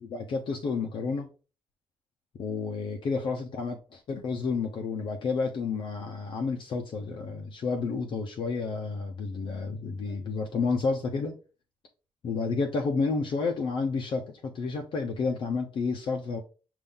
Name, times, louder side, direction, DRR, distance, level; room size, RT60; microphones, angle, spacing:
voice 1, 0.0-1.3 2.4-11.3 12.2-16.4, left 4 dB, 60° left, 0.7 m, -30 dB
5.4 x 2.6 x 3.5 m
cardioid pair, 105°, 9 cm